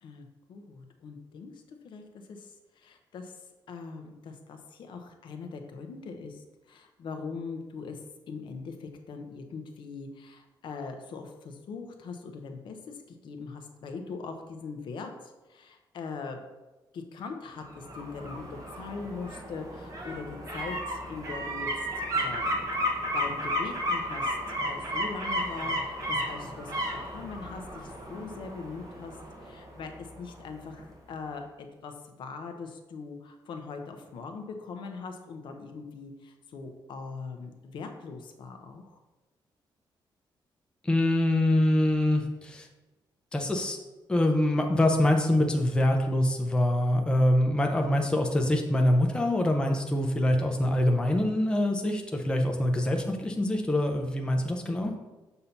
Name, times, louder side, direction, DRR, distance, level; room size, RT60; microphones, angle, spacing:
voice 1, 0.0-3.4 3.7-8.0 8.3-16.4 16.9-22.7 23.1-29.2 29.4-39.0, left 4 dB, 70° left, 5 dB, 0.7 m, -41 dB
sound 1, 17.6-30.4 30.8-30.9, equal, 40° right, 1.1 m, -33 dB
voice 2, 40.8-42.7 43.3-43.8 44.1-54.9, left 1 dB, 10° left, 2 dB, 0.5 m, -25 dB
6.8 x 2.8 x 5.7 m, 1.1 s
wide cardioid pair, 160°, 9 cm